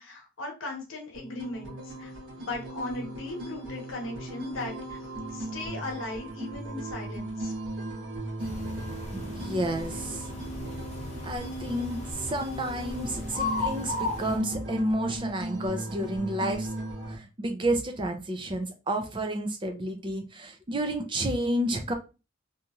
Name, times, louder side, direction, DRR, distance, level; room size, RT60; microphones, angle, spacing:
voice 1, 0.0-2.1 2.4-7.5, left 2 dB, 85° left, 1.0 m, -38 dB
sound 1, 1.1-17.2, right 1 dB, 75° right, 1.2 m, -37 dB
sound 2, 8.4-14.4, left 3 dB, 35° left, 0.6 m, -36 dB
voice 2, 9.1-10.3 11.2-16.7 17.1-21.9, right 1 dB, 25° right, 0.5 m, -30 dB
2.9 x 2.8 x 2.3 m
head